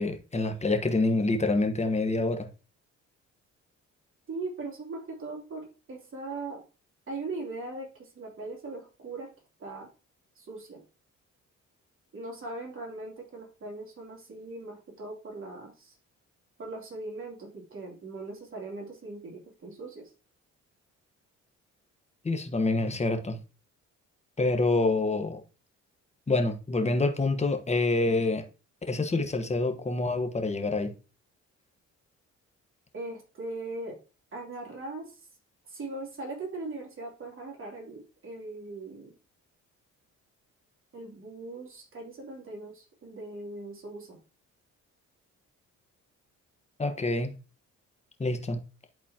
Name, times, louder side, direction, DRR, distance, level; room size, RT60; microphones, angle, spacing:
voice 1, 0.0-2.5 22.2-23.4 24.4-25.4 26.3-28.4 28.9-30.9 46.8-47.3 48.2-48.6, left 2 dB, 20° left, 1.2 m, -27 dB
voice 2, 4.3-6.6 7.1-9.3 9.6-9.9 10.3-10.8 12.1-16.0 16.6-20.1 32.9-34.0 34.3-35.3 35.7-39.1 40.9-44.2, right 2 dB, 45° right, 2.9 m, -40 dB
11.0 x 4.0 x 2.9 m
cardioid pair, 90°, 30 cm